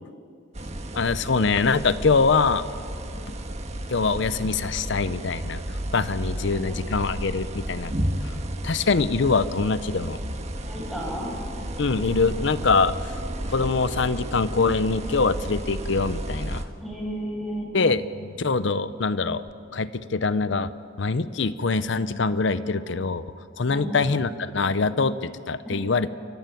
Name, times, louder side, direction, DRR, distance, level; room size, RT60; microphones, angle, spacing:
sound 1, 0.5-16.7, right 1 dB, 35° right, 1.5 m, -33 dB
voice 1, 0.9-2.6 3.9-5.6 5.9-7.9 8.2-8.3 8.6-10.2 11.8-12.9 13.5-16.6 17.7-18.0 18.4-19.4 19.7-20.7 21.0-23.2 23.6-26.1, left 4 dB, 60° left, 15 dB, 0.6 m, -23 dB
voice 2, 6.3-6.9 10.7-11.3 16.8-17.7 23.7-23.9 25.6-25.7, equal, ahead, -4 dB, 6.4 m, -33 dB
29.5 x 15.0 x 9.1 m, 2.5 s
head